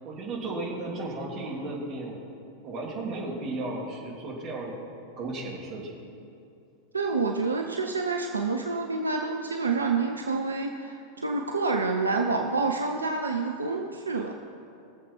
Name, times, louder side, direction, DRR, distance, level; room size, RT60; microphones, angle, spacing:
voice 1, 0.0-2.2 2.6-4.8 5.2-5.9, right 2 dB, 35° right, -3 dB, 3.3 m, -34 dB
voice 2, 6.9-14.3, right 4 dB, 75° right, 3 dB, 0.7 m, -28 dB
21.5 x 7.5 x 4.6 m, 2.6 s
figure-of-eight pair, 90°, 0 cm